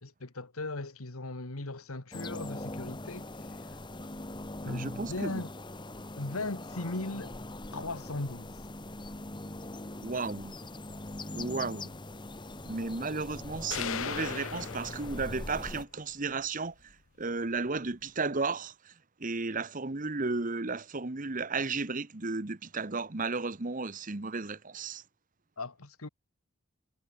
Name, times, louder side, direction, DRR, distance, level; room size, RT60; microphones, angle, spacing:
voice 1, 0.0-3.8 4.6-5.5 6.2-7.3 7.7-8.5 25.6-26.1, left 2 dB, 85° left, 1.9 m, -38 dB
sound 1, 2.1-15.8, left 2 dB, 20° left, 1.3 m, -42 dB
voice 2, 4.6-5.4 10.0-10.5 11.3-11.9 12.6-18.9 19.2-25.0, right 3 dB, 35° right, 1.1 m, -34 dB
sound 2, 13.7-15.7, left 8 dB, 65° left, 0.7 m, -37 dB
head